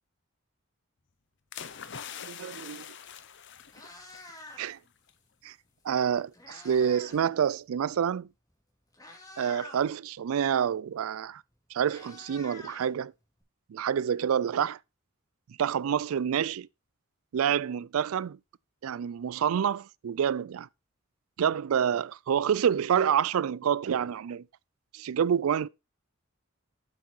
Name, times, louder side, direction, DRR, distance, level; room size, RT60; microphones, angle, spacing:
sound 1, 1.5-4.5 4.9-5.1, left 8 dB, 55° left, 0.8 m, -44 dB
voice 1, 2.2-2.8 4.6-4.8 5.4-5.5 5.8-8.3 9.4-11.4 11.7-13.1 13.7-14.8 15.6-16.7 17.3-18.4 18.8-20.7 21.4-24.4 24.9-25.7, right 8 dB, 80° right, 0.4 m, -28 dB
Meow, 3.1-3.2 3.6-4.9 5.9-7.3 7.5-7.8 8.5-8.6 8.9-9.9 11.2-11.3 11.5-13.4, left 2 dB, 15° left, 2.4 m, -48 dB
7.6 x 7.0 x 4.4 m
head